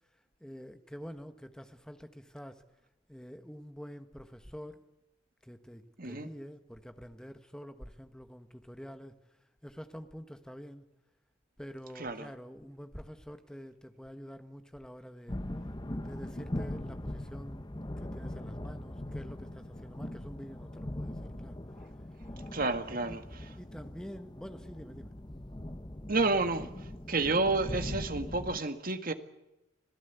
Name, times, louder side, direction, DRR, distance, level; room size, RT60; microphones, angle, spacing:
voice 1, 0.4-2.6 3.1-4.8 5.4-9.2 9.6-10.8 11.6-15.4 15.9-17.7 18.0-21.6 23.1-23.2 23.6-25.1, equal, 5° left, 1.3 m, -47 dB
sound 1, 15.3-28.6, left 1 dB, 20° left, 1.0 m, -41 dB
voice 2, 22.5-23.2 26.1-26.7 27.1-29.1, right 3 dB, 45° right, 1.7 m, -30 dB
26.5 x 16.5 x 8.2 m
head